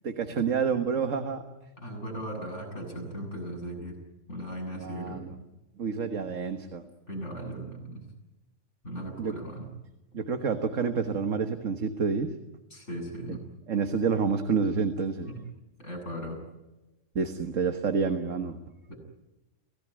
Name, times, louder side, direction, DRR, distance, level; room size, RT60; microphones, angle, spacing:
voice 1, 0.0-1.4 4.8-5.4 5.8-6.8 9.2-9.4 10.1-12.3 13.7-15.3 17.2-18.6, right 5 dB, 75° right, 6 dB, 1.8 m, -28 dB
voice 2, 1.8-4.0 4.3-5.2 7.1-8.0 8.8-9.7 12.7-13.5 15.3-15.4 15.8-16.4 18.9-19.0, right 1 dB, 65° left, 1 dB, 8.2 m, -37 dB
28.0 x 17.5 x 9.9 m, 1.0 s
omnidirectional pair, 1.3 m